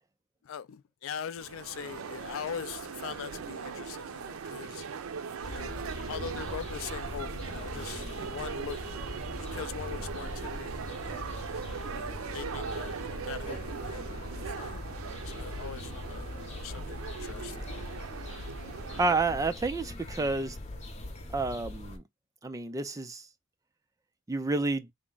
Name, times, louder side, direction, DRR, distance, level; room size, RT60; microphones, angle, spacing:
voice 1, 0.4-4.8 5.4-9.0 9.3-11.4 11.9-14.8 15.1-17.9, left 8 dB, 70° left, 0.3 m, -42 dB
sound 1, 1.4-19.1, right 6 dB, 90° right, 0.5 m, -40 dB
sound 2, 5.4-22.0, left 1 dB, 35° left, 0.7 m, -41 dB
voice 2, 19.0-20.6 21.3-22.0 22.4-23.3 24.3-24.9, right 3 dB, 15° right, 0.3 m, -29 dB
3.5 x 2.0 x 3.7 m
head